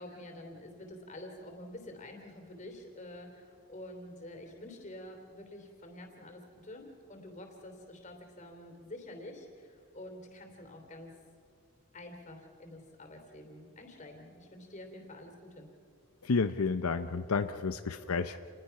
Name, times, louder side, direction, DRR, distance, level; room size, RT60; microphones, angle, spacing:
voice 1, 0.0-11.1 11.9-15.7, left 1 dB, 35° left, 4 dB, 2.9 m, -48 dB
voice 2, 16.2-18.4, left 4 dB, 85° left, 10 dB, 0.7 m, -31 dB
28.0 x 20.0 x 5.8 m, 2.5 s
head